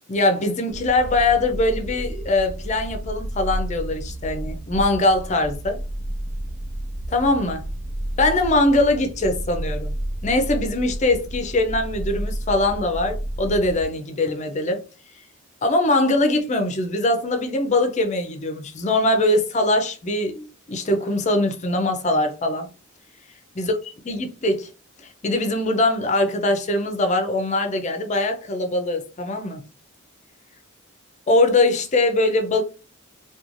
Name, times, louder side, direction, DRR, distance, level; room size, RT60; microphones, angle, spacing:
voice 1, 0.1-5.8 7.1-7.7 8.2-9.9 10.2-14.8 15.6-22.7 23.6-24.7 25.2-29.6 31.3-32.6, left 2 dB, 30° left, 0.4 m, -22 dB
sound 1, 0.7-13.9, right 1 dB, 85° right, 0.8 m, -31 dB
3.0 x 2.3 x 2.5 m
head